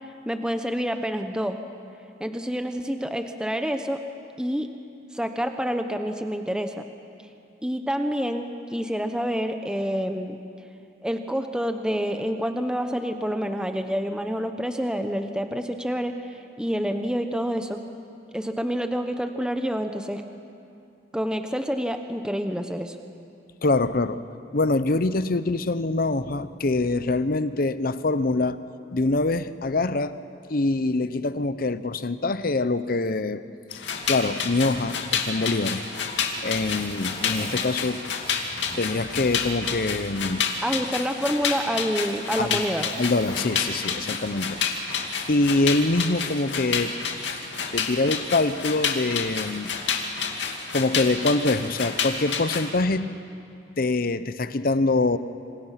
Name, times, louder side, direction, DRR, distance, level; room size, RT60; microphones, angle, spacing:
voice 1, 0.3-1.6 2.2-4.0 4.4-4.7 5.1-6.9 7.6-10.4 11.0-17.8 18.3-20.2 21.1-23.0 40.6-42.9, equal, 5° right, 6 dB, 0.9 m, -28 dB
voice 2, 23.6-24.2 24.5-28.6 28.9-30.2 30.5-33.4 34.1-35.8 36.4-38.0 38.8-40.4 42.4-42.7 43.0-44.6 45.3-46.9 47.7-49.7 50.7-53.1 53.8-55.2, left 2 dB, 55° left, 13 dB, 0.8 m, -24 dB
sound 1, 33.7-52.7, left 6 dB, 85° left, 2.4 m, -29 dB
Zipper (clothing), 35.3-39.8 40.2-40.3 41.1-44.5 45.7-45.9, left 2 dB, 30° left, 2.9 m, -43 dB
26.5 x 26.5 x 5.8 m, 2.6 s
head